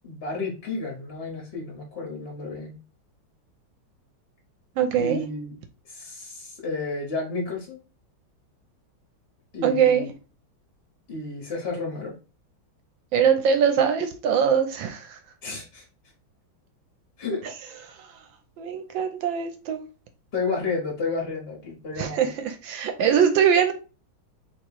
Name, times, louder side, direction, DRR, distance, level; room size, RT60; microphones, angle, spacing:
voice 1, 0.0-2.8 5.0-5.5 5.8-7.8 9.5-10.1 11.1-12.1 15.4-15.9 17.2-17.4 20.3-22.3, left 3 dB, 50° left, 0.7 m, -31 dB
voice 2, 4.8-5.2 9.6-10.1 13.1-15.2 17.8-18.2 18.6-19.8 22.0-23.7, right 7 dB, 75° right, 1.2 m, -22 dB
3.0 x 3.0 x 4.4 m
omnidirectional pair, 2.3 m